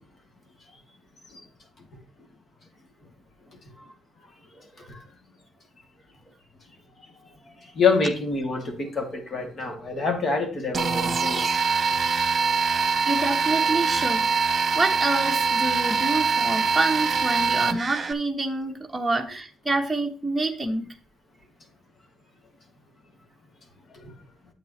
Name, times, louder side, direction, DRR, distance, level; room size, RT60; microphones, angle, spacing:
voice 1, 7.7-11.6 24.0-24.1, left 4 dB, 50° left, 3 dB, 2.6 m, -26 dB
sound 1, 10.7-18.1, right 5 dB, 35° right, 1.1 m, -23 dB
voice 2, 13.1-20.9, right 2 dB, 10° right, 1 dB, 1.0 m, -27 dB
9.7 x 7.9 x 3.2 m, 0.36 s
cardioid pair, 90°, 0 cm